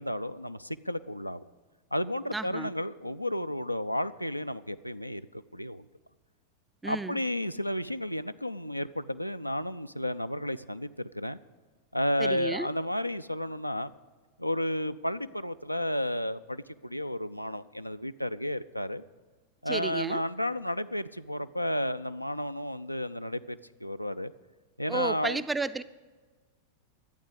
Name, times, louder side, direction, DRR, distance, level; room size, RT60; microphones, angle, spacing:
voice 1, 0.0-1.4 1.9-5.2 5.5-5.9 6.8-11.4 11.9-13.9 14.4-19.0 19.6-24.3 24.8-25.4, left 1 dB, 90° left, 11 dB, 0.3 m, -32 dB
voice 2, 2.3-2.7 6.8-7.2 12.2-12.7 19.7-20.2 24.9-25.8, right 3 dB, 10° right, 14 dB, 0.4 m, -32 dB
11.5 x 8.7 x 8.0 m, 1.3 s
figure-of-eight pair, 90°, 0 cm